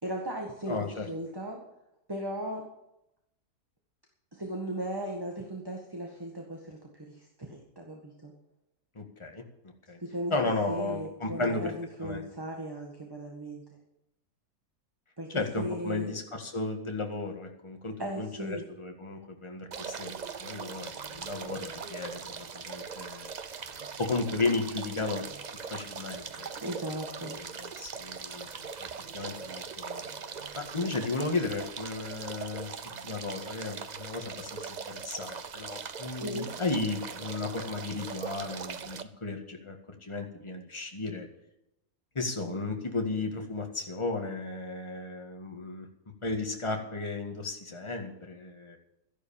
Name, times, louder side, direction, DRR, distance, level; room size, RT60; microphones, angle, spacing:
voice 1, 0.0-1.6 2.1-2.6 4.3-8.3 10.0-10.4 10.7-13.8 15.2-16.1 18.0-18.6 26.5-27.4 36.2-36.5, right 1 dB, 15° right, 1 dB, 1.7 m, -37 dB
voice 2, 0.7-1.1 9.0-9.4 9.9-10.0 10.3-11.7 12.0-12.2 15.3-20.1 20.4-23.3 24.0-25.3 25.7-26.5 27.2-28.5 28.8-28.9 29.1-30.0 30.5-32.7 33.0-39.8 40.0-41.3 42.2-45.9 46.2-48.8, left 3 dB, 20° left, 3 dB, 1.8 m, -34 dB
sound 1, 19.7-39.0, right 6 dB, 45° right, 0.6 m, -41 dB
13.0 x 11.0 x 7.1 m, 0.86 s
omnidirectional pair, 1.7 m